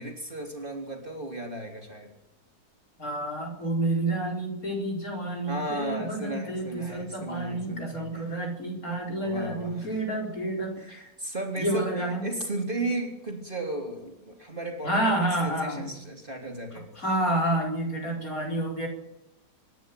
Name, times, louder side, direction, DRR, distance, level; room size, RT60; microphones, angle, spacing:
voice 1, 0.0-2.1 5.5-8.5 8.9-10.0 10.8-16.9, right 2 dB, 30° right, 2 dB, 3.8 m, -35 dB
voice 2, 3.0-11.1 11.6-12.3 14.8-15.9 17.0-18.9, right 1 dB, 55° left, 0 dB, 5.0 m, -29 dB
26.0 x 11.5 x 9.2 m, 0.86 s
omnidirectional pair, 1.8 m